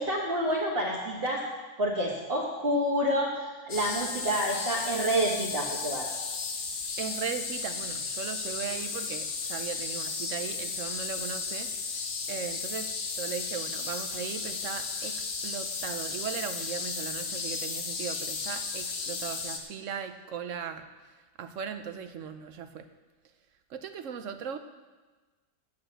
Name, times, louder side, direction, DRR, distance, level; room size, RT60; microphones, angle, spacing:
voice 1, 0.0-1.4 1.8-6.1, equal, 35° right, -5 dB, 1.6 m, -28 dB
sound 1, 3.7-19.6, left 4 dB, 75° left, 1.7 m, -34 dB
voice 2, 7.0-11.7 12.3-20.8 21.4-22.8 23.7-24.6, right 7 dB, 60° right, 9 dB, 0.8 m, -38 dB
8.7 x 8.5 x 7.7 m, 1.3 s
omnidirectional pair, 1.8 m